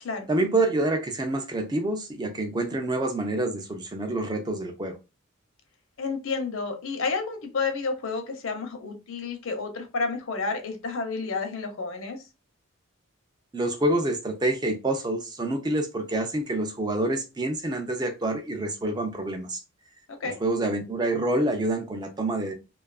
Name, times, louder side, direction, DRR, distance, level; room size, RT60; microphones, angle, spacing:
voice 1, 0.3-5.0 13.5-19.6 20.2-22.5, right 2 dB, 20° right, 0.3 m, -27 dB
voice 2, 6.0-12.2 20.2-20.4, left 4 dB, 70° left, 0.6 m, -30 dB
2.6 x 2.3 x 2.3 m
head